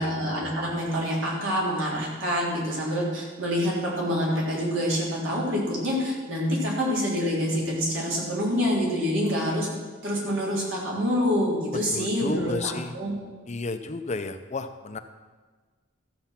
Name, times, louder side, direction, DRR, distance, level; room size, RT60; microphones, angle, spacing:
voice 1, 0.0-9.7 10.0-13.1, equal, 80° right, -4 dB, 3.5 m, -26 dB
voice 2, 11.9-12.9 13.5-15.0, left 3 dB, 35° left, 9 dB, 0.6 m, -32 dB
13.5 x 7.0 x 5.8 m, 1.4 s
head